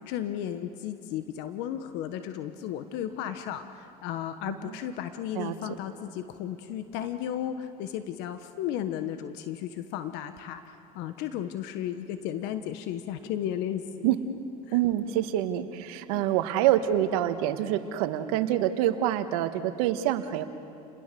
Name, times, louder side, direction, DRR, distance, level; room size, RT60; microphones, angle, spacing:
voice 1, 0.1-14.1 14.7-14.8 16.1-16.3, left 10 dB, 65° left, 9 dB, 1.3 m, -34 dB
voice 2, 14.7-20.4, right 12 dB, 75° right, 9 dB, 1.6 m, -26 dB
30.0 x 21.0 x 6.9 m, 2.8 s
supercardioid pair, 95°, 19 cm